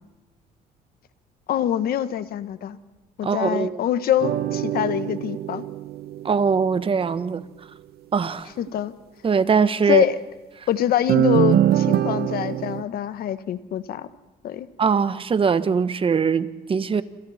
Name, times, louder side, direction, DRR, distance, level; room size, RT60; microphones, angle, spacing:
voice 1, 1.5-2.8 3.2-5.6 8.6-8.9 9.9-10.2 10.7-14.1 14.4-14.7, left 11 dB, 65° left, 1.5 m, -24 dB
voice 2, 3.2-3.8 6.2-7.4 8.1-8.5 9.2-10.0 14.8-17.0, right 5 dB, 30° right, 1.3 m, -21 dB
sound 1, 4.2-6.8 11.1-12.8, right 11 dB, 70° right, 1.0 m, -23 dB
28.5 x 27.5 x 4.4 m
cardioid pair, 110°, 17 cm